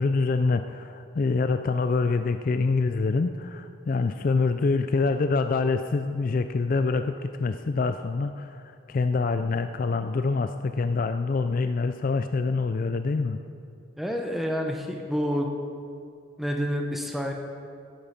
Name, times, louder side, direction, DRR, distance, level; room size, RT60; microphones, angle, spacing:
voice 1, 0.0-8.6 8.9-13.4, left 4 dB, 40° left, 9 dB, 0.3 m, -25 dB
voice 2, 14.0-15.5 16.4-17.3, equal, ahead, 1 dB, 0.9 m, -28 dB
13.0 x 8.6 x 5.8 m, 2.5 s
head